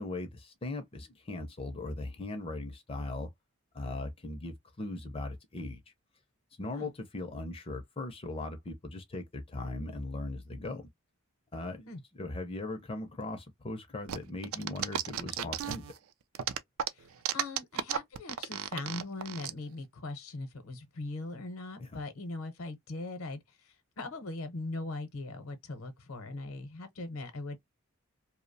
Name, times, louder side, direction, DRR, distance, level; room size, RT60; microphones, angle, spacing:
voice 1, 0.0-3.3 3.7-5.8 6.6-10.9 11.5-11.9 12.2-15.9 21.8-22.0, left 2 dB, 25° left, 0.4 m, -39 dB
sound 1, 14.1-16.0 16.3-19.5, right 9 dB, 70° right, 0.3 m, -33 dB
voice 2, 17.3-27.6, left 2 dB, 75° left, 0.7 m, -40 dB
2.6 x 2.0 x 2.5 m
head